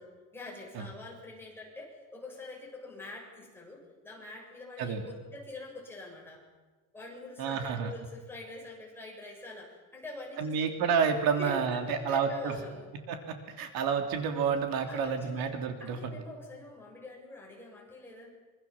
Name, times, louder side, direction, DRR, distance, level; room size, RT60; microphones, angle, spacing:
voice 1, 0.0-6.4 6.9-10.7 11.3-12.9 14.9-18.3, left 2 dB, 5° left, -2 dB, 7.4 m, -44 dB
voice 2, 7.4-7.9 10.4-12.5 13.1-16.2, right 6 dB, 70° right, 5 dB, 3.3 m, -30 dB
26.0 x 25.5 x 7.4 m, 1.3 s
cardioid pair, 165°, 37 cm